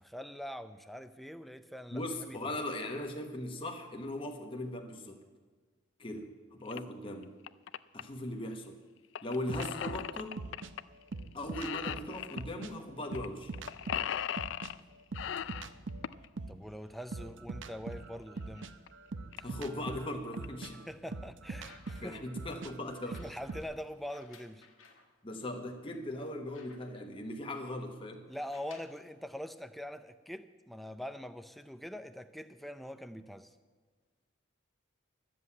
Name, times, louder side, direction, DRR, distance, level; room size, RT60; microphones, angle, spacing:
voice 1, 0.0-2.5 16.5-18.7 19.4-19.5 20.9-22.2 23.0-24.7 28.3-33.5, equal, ahead, 10 dB, 0.5 m, -44 dB
voice 2, 1.9-5.2 6.0-7.4 7.9-8.8 9.2-10.4 11.3-13.5 19.4-20.9 22.0-23.2 25.2-28.3, left 1 dB, 25° left, 3 dB, 1.1 m, -39 dB
sound 1, 6.6-6.8 7.2-8.0 9.1-10.8 11.1-11.3 11.5-12.4 13.1-13.3 13.5-14.8 15.1-16.3 17.9-18.0 18.6-18.7 18.9-19.0 19.3-19.6 20.1-20.4, left 9 dB, 65° left, 0.4 m, -38 dB
sound 2, 9.5-12.7 13.1-16.7 17.1-23.6, right 3 dB, 70° right, 0.7 m, -43 dB
sound 3, 21.5-22.3 23.0-25.1 25.7-25.8 26.1-27.2 28.3-29.0 30.0-30.1, left 4 dB, 85° left, 1.6 m, -60 dB
13.0 x 7.8 x 8.5 m, 1.4 s
head